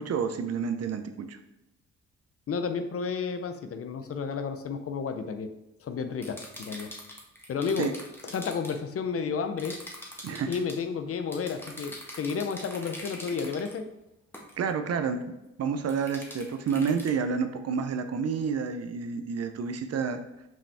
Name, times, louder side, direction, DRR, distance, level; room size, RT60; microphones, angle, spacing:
voice 1, 0.0-1.4 7.8-7.9 10.2-10.6 13.4-13.5 14.6-15.2 15.6-20.2, right 6 dB, 55° right, 8 dB, 0.6 m, -29 dB
voice 2, 2.5-5.5 5.8-6.9 7.5-7.9 8.2-9.8 10.5-13.9, left 5 dB, 50° left, 8 dB, 0.6 m, -32 dB
sound 1, 6.2-8.8 9.6-10.8 11.3-13.7 14.3-14.6 15.9-17.1, left 1 dB, 5° left, 1.4 m, -43 dB
5.6 x 5.0 x 3.5 m, 0.91 s
cardioid pair, 90°, 30 cm